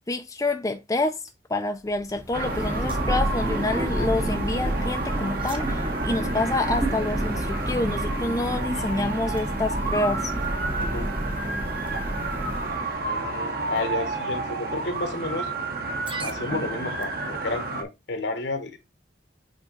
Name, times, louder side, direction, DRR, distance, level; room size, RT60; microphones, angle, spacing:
voice 1, 0.1-1.2 1.5-10.3, left 2 dB, 20° left, 0.5 m, -27 dB
sound 1, 1.3-1.4 1.9-3.3 3.9-4.0 5.1-6.3 6.9-7.0 7.7-7.8 8.3-9.0 9.3-9.4 10.4-10.5 10.8-11.0 11.9-12.1 12.8-13.1 13.7-13.8 14.8-14.9 15.9-17.4, right 3 dB, 30° right, 1.1 m, -42 dB
Thunder, 2.0-13.1, right 1 dB, 10° right, 0.9 m, -29 dB
sound 2, 2.3-17.8, right 2 dB, 55° right, 1.3 m, -31 dB
voice 2, 10.8-11.1 13.0-15.5 16.2-18.8, left 2 dB, 65° left, 1.3 m, -31 dB
8.1 x 3.6 x 3.9 m
head